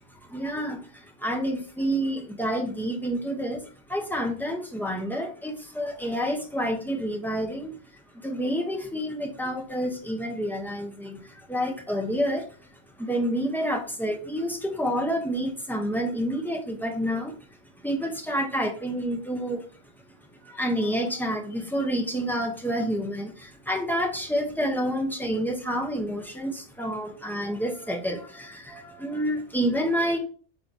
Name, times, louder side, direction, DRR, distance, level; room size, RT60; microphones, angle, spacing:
voice 1, 0.3-3.6 3.9-7.8 8.2-12.5 13.0-17.4 17.8-19.6 20.4-30.2, equal, ahead, 3 dB, 0.9 m, -28 dB
8.2 x 3.9 x 3.4 m, 0.41 s
omnidirectional pair, 1.2 m